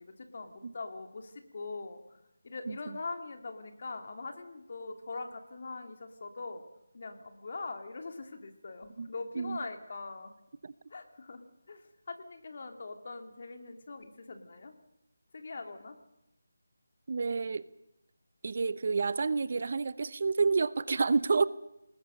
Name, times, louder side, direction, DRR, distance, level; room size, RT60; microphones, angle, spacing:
voice 1, 0.0-2.0 2.4-6.6 6.9-10.3 10.9-11.8 12.1-14.7 15.3-16.0, left 3 dB, 45° left, 6 dB, 3.0 m, -42 dB
voice 2, 2.7-3.0 9.0-9.1 9.4-9.6 10.6-10.7 17.1-17.6 18.4-21.5, right 4 dB, 45° right, 18 dB, 0.8 m, -29 dB
28.5 x 20.0 x 6.7 m, 0.85 s
figure-of-eight pair, 170°, 0 cm